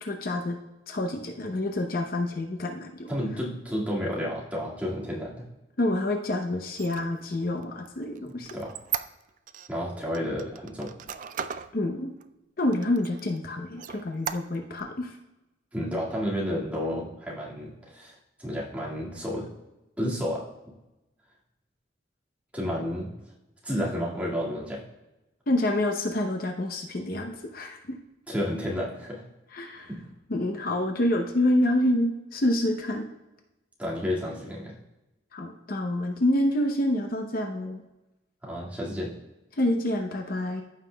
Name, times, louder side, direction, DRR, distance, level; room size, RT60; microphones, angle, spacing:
voice 1, 0.0-0.6 0.9-3.1 5.8-8.5 11.7-12.1 12.6-15.2 25.5-28.0 29.5-29.9 30.3-33.1 35.3-37.8 39.6-40.6, left 1 dB, 50° left, 3 dB, 0.7 m, -27 dB
voice 2, 3.1-5.5 8.2-8.7 9.7-10.9 15.7-19.5 20.0-20.5 22.5-23.1 23.6-24.8 28.3-29.2 29.9-30.0 33.8-34.8 38.4-39.1, equal, 5° right, -5 dB, 1.9 m, -31 dB
Squeak, 6.7-9.7 10.1-11.7 12.2-12.3 12.7-13.4 13.8-14.8, right 9 dB, 45° right, 0.3 m, -36 dB
14.0 x 5.8 x 2.3 m, 0.98 s
head